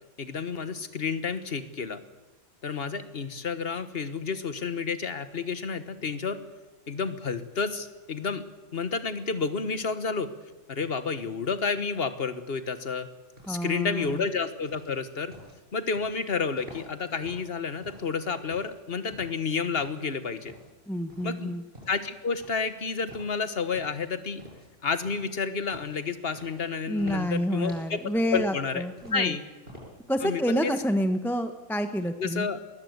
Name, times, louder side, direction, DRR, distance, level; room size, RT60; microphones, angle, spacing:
voice 1, 0.2-2.0 2.6-6.4 6.9-8.4 8.7-10.3 10.7-13.1 13.5-15.3 15.7-20.5 21.2-21.5 21.9-24.4 24.8-28.0 28.3-28.8 29.1-29.4 30.2-30.7 32.2-32.6, left 5 dB, 40° left, 12 dB, 1.5 m, -30 dB
sound 1, 13.4-30.3, equal, 35° right, 8.1 m, -50 dB
voice 2, 13.5-14.2 20.9-21.6 26.9-29.4 30.1-32.5, equal, ahead, 8 dB, 1.0 m, -28 dB
21.0 x 20.0 x 8.1 m, 1.1 s
omnidirectional pair, 1.6 m